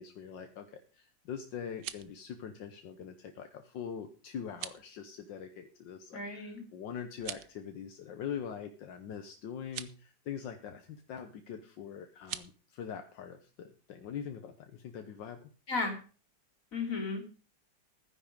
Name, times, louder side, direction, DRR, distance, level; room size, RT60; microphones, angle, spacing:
voice 1, 0.0-15.5, left 7 dB, 75° left, 6 dB, 1.7 m, -43 dB
sound 1, 1.6-2.2 4.5-4.9 7.1-7.6 9.6-10.0 12.2-12.5, right 11 dB, 70° right, 1.3 m, -43 dB
voice 2, 6.1-6.6 15.7-15.9 16.7-17.3, left 3 dB, 45° left, 3 dB, 3.3 m, -34 dB
12.5 x 9.9 x 5.2 m, 0.37 s
omnidirectional pair, 2.0 m